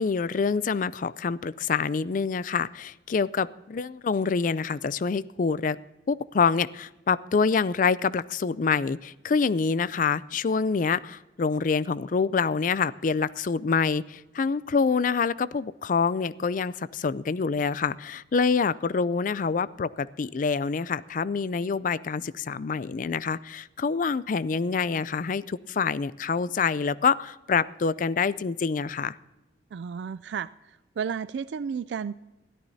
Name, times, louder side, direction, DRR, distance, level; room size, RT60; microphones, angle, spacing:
voice 1, 0.0-5.8 6.1-29.2, left 5 dB, 50° left, 18 dB, 0.4 m, -26 dB
voice 2, 29.7-32.2, right 6 dB, 80° right, 16 dB, 0.3 m, -33 dB
21.5 x 13.5 x 2.7 m, 1.0 s
head